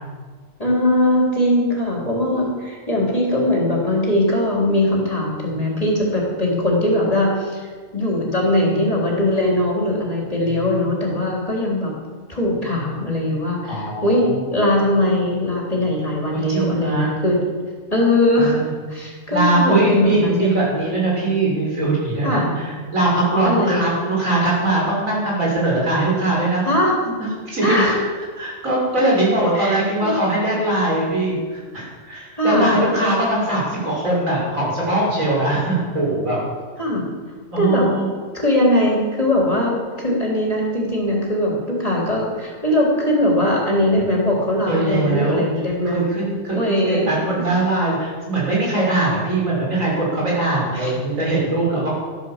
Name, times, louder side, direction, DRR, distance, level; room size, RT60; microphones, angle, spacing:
voice 1, 0.6-7.6 7.9-11.9 12.3-17.4 17.9-18.6 18.9-20.5 22.2-22.5 23.4-23.8 26.6-27.2 27.6-28.0 29.5-30.2 32.4-32.7 36.8-37.0 37.6-37.9 38.3-46.0 46.5-47.6 50.7-50.9, left 1 dB, 30° left, -3 dB, 3.7 m, -20 dB
voice 2, 13.6-14.4 16.3-17.2 18.4-18.7 19.0-26.6 27.5-27.9 28.4-36.4 37.5-38.1 44.6-45.4 45.9-51.9, right 2 dB, 80° right, -4 dB, 6.2 m, -21 dB
13.5 x 11.0 x 7.5 m, 1.5 s
omnidirectional pair, 1.4 m